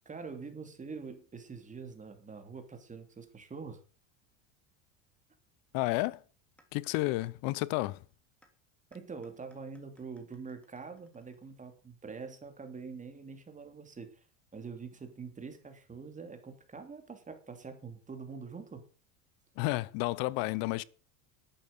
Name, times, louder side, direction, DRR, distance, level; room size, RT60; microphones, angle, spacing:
voice 1, 0.0-3.8 8.9-14.2 14.5-18.8, right 5 dB, 20° right, 2.9 m, -45 dB
voice 2, 5.7-6.2 6.7-8.0 19.6-20.8, left 20 dB, 65° left, 0.8 m, -31 dB
sound 1, 6.6-6.7 7.2-7.3 7.8-7.9 8.4-8.5 8.9-11.8, equal, 5° left, 3.1 m, -66 dB
11.5 x 8.9 x 6.8 m
supercardioid pair, 115°, 38 cm